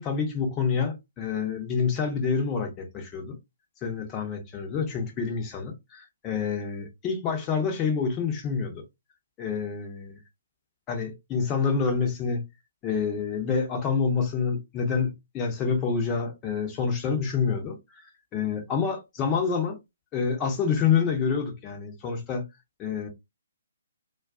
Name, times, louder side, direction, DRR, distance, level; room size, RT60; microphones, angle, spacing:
voice 1, 0.0-3.3 3.8-8.8 9.4-10.2 10.9-12.4 12.8-19.8 20.1-22.4 22.8-23.1, left 6 dB, 20° left, 0.7 m, -27 dB
2.4 x 2.3 x 2.4 m
figure-of-eight pair, 135°, 0 cm